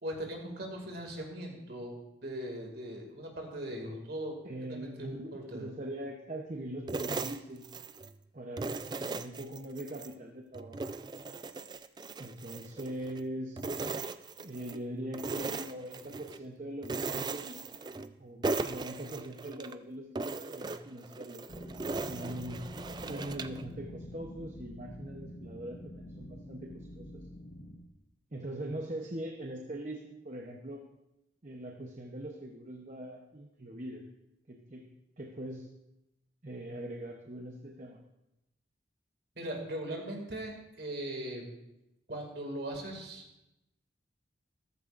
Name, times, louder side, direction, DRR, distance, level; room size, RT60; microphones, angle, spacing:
voice 1, 0.0-4.4 4.7-5.7 39.4-41.6 42.1-43.2, right 1 dB, 55° right, 1 dB, 2.3 m, -39 dB
voice 2, 4.4-7.7 8.3-11.1 12.2-13.6 14.4-17.6 18.2-21.5 21.7-22.6 23.1-27.3 28.3-30.8 31.4-34.0 34.5-34.8 35.2-35.7 36.4-38.0, right 1 dB, 40° right, 1 dB, 0.9 m, -42 dB
sound 1, 6.9-8.2 8.6-10.1 10.5-13.2 13.6-14.8 15.1-16.4 16.8-18.2 18.4-19.7 20.1-23.6, right 3 dB, 20° right, 0.3 m, -38 dB
sound 2, 21.5-27.8, left 1 dB, 45° left, 1.6 m, -46 dB
14.0 x 13.5 x 2.6 m, 0.90 s
head